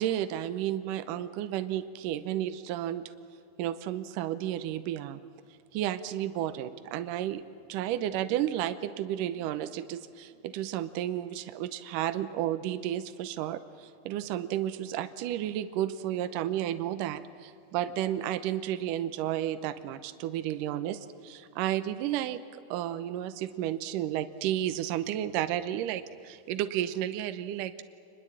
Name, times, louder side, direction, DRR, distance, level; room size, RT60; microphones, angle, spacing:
voice 1, 0.0-3.1 3.6-5.2 5.7-7.4 7.7-22.4 22.7-27.8, right 12 dB, 75° right, 11 dB, 2.4 m, -32 dB
26.0 x 21.0 x 8.8 m, 2.5 s
omnidirectional pair, 4.0 m